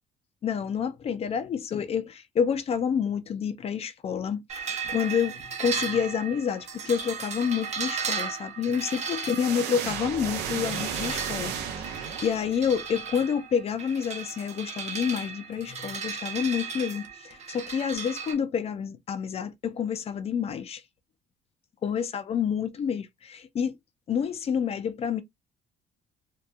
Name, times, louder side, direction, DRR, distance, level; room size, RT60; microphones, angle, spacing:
voice 1, 0.4-20.8 21.8-23.8 24.1-25.2, left 7 dB, 35° left, 0.4 m, -29 dB
sound 1, 4.5-18.3, right 6 dB, 40° right, 0.7 m, -36 dB
sound 2, 9.3-12.7, right 8 dB, 80° right, 0.6 m, -33 dB
2.7 x 2.2 x 2.2 m
cardioid pair, 110°, 17 cm